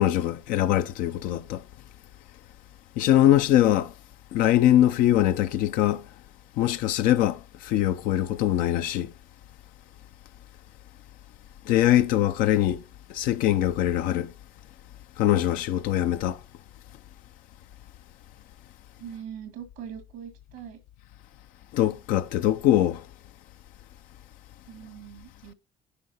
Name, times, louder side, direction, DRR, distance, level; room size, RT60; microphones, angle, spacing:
voice 1, 0.0-1.6 3.0-3.9 4.3-6.0 6.6-9.1 11.7-12.8 13.1-14.3 15.2-16.4 21.7-23.0, left 12 dB, 75° left, 0.6 m, -22 dB
voice 2, 19.0-20.8 24.7-25.5, right 9 dB, 85° right, 1.7 m, -41 dB
10.0 x 4.7 x 4.1 m
supercardioid pair, 70°, 14 cm